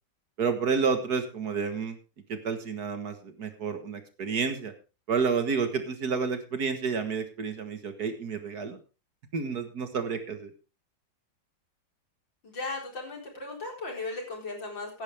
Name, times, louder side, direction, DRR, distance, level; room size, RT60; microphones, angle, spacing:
voice 1, 0.4-2.0 2.3-4.7 5.1-8.8 9.3-10.5, right 5 dB, 55° right, 8 dB, 2.0 m, -30 dB
voice 2, 12.4-15.0, left 3 dB, 80° left, 0 dB, 5.0 m, -36 dB
16.0 x 10.5 x 3.4 m, 0.31 s
omnidirectional pair, 2.0 m